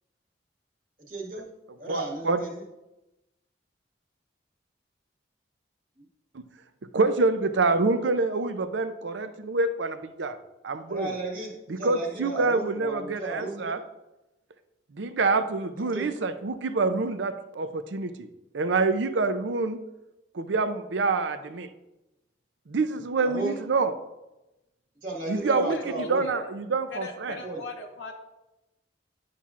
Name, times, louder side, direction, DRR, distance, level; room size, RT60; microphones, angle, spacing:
voice 1, 1.0-1.5 1.8-2.5 10.9-13.8 15.9-16.1 23.2-23.6 25.0-26.3 27.4-27.6, right 2 dB, 45° right, -3 dB, 1.6 m, -34 dB
voice 2, 1.8-2.4 6.3-6.4 6.9-10.4 10.6-11.1 11.7-13.8 14.9-18.3 18.5-19.8 20.3-21.7 22.7-23.9 25.3-27.4, right 3 dB, 70° right, 10 dB, 0.5 m, -26 dB
voice 3, 25.7-26.5 26.9-28.1, left 3 dB, 85° left, 1 dB, 0.7 m, -40 dB
11.0 x 5.6 x 2.4 m, 0.97 s
head